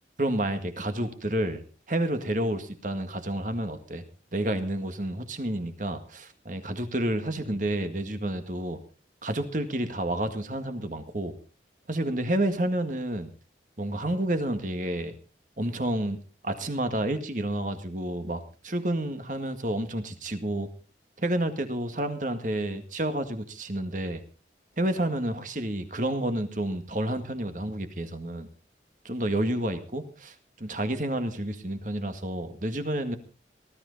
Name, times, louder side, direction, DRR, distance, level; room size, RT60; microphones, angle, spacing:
voice 1, 0.2-1.6 1.9-4.0 4.3-8.8 9.2-11.3 11.9-13.3 13.8-15.1 15.6-16.2 16.4-20.7 21.2-24.2 24.8-28.5 29.0-33.2, right 1 dB, 45° right, 8 dB, 1.9 m, -30 dB
19.5 x 13.0 x 4.1 m, 0.35 s
head